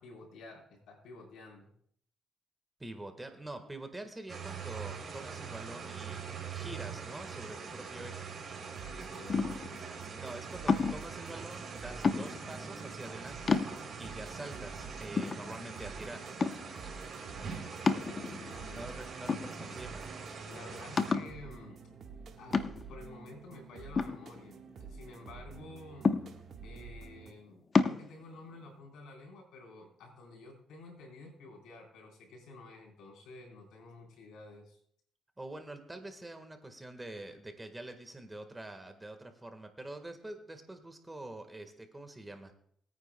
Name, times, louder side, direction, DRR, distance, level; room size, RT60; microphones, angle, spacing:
voice 1, 0.0-1.7 8.8-9.4 9.7-10.0 18.3-18.9 20.4-21.8 22.4-26.1 26.6-34.8, left 2 dB, 85° left, -1 dB, 4.2 m, -51 dB
voice 2, 2.8-6.2 6.5-8.3 10.1-13.6 14.0-16.4 18.7-20.0 35.4-42.5, right 1 dB, 15° right, 6 dB, 1.5 m, -46 dB
sound 1, 4.3-21.1, right 5 dB, 45° right, 3.2 m, -43 dB
sound 2, 8.7-27.3, right 5 dB, 60° right, 1.5 m, -49 dB
sound 3, 9.3-9.8 10.7-11.1 12.0-12.5 13.1-13.2 13.5-14.1 14.7-14.8 15.2-15.9 16.4-16.8 17.9-18.6 19.3-19.9 20.3-20.4 21.0-21.4 22.5-23.0 24.0-24.9 26.0-26.6 27.7-28.0, left 5 dB, 40° left, 0.8 m, -30 dB
21.5 x 9.4 x 2.2 m, 0.66 s
cardioid pair, 90°, 0 cm